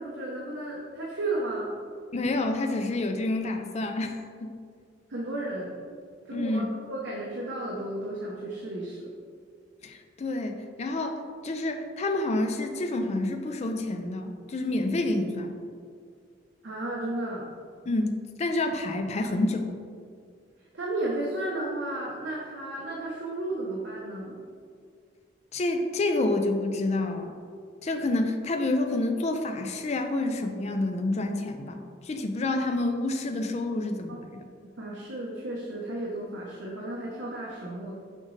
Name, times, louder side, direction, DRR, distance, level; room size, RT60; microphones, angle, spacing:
voice 1, 0.0-1.7 5.1-5.8 6.3-9.1 16.6-17.5 20.7-24.4 34.1-34.2 34.8-38.0, right 2 dB, 65° right, -4 dB, 0.8 m, -33 dB
voice 2, 2.1-4.5 6.3-6.6 9.8-15.6 17.9-19.8 25.5-27.3 27.8-34.4, left 2 dB, 35° left, 5 dB, 0.4 m, -28 dB
6.4 x 5.1 x 3.2 m, 2.2 s
head